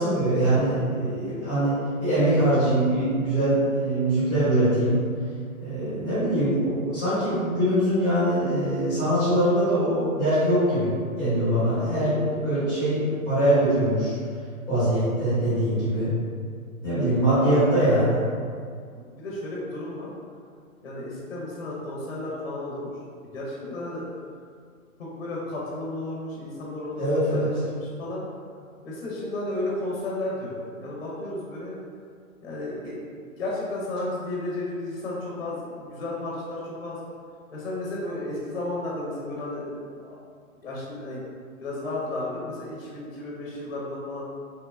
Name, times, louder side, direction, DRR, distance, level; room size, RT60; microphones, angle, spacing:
voice 1, 0.0-5.0 5.6-14.1 14.7-16.1 16.8-18.2 27.0-27.5, right 1 dB, ahead, -15 dB, 0.7 m, -23 dB
voice 2, 11.7-12.0 15.4-15.6 17.0-17.5 18.9-20.1 20.8-22.9 23.3-24.0 25.0-28.2 28.8-31.8 32.4-33.0 33.4-37.0 37.5-40.2 40.6-41.2 41.6-44.2, left 2 dB, 45° left, -5 dB, 0.5 m, -33 dB
2.8 x 2.1 x 2.3 m, 2.1 s
hypercardioid pair, 165°, 43 cm